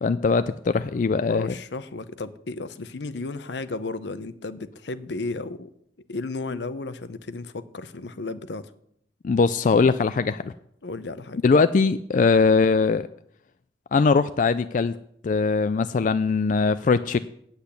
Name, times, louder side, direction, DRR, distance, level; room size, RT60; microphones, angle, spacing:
voice 1, 0.0-1.5 9.2-10.5 11.4-13.1 13.9-15.0 15.2-17.2, left 4 dB, 45° left, 12 dB, 0.3 m, -21 dB
voice 2, 1.3-5.7 6.1-8.7 10.8-11.4, left 3 dB, 75° left, 13 dB, 0.7 m, -34 dB
8.6 x 8.1 x 8.2 m, 0.70 s
head